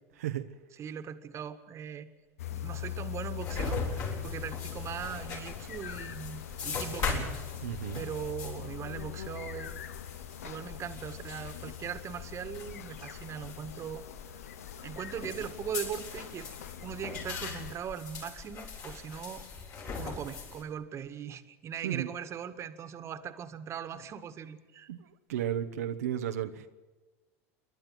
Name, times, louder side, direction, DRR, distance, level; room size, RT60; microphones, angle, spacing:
voice 1, 0.2-0.5 7.6-8.0 21.8-22.1 24.9-26.7, right 10 dB, 85° right, 5 dB, 1.2 m, -34 dB
voice 2, 0.8-2.1 2.5-7.3 7.9-9.8 10.4-14.0 14.8-16.5 16.8-19.4 20.0-24.9, right 8 dB, 35° right, 9 dB, 1.8 m, -40 dB
sound 1, 2.4-17.7, left 11 dB, 90° left, 0.8 m, -42 dB
sound 2, 3.4-20.6, left 4 dB, 45° left, 7.5 m, -40 dB
27.5 x 12.0 x 9.5 m, 1.2 s
hypercardioid pair, 100°, 8 cm